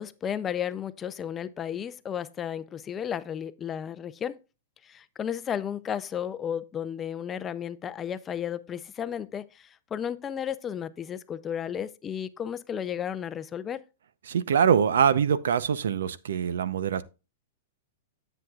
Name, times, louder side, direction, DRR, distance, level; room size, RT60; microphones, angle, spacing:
voice 1, 0.0-4.4 4.8-13.8, left 9 dB, 20° left, 0.5 m, -33 dB
voice 2, 14.3-17.0, right 7 dB, 85° right, 0.7 m, -24 dB
10.5 x 7.9 x 2.4 m
hypercardioid pair, 150°, 0 cm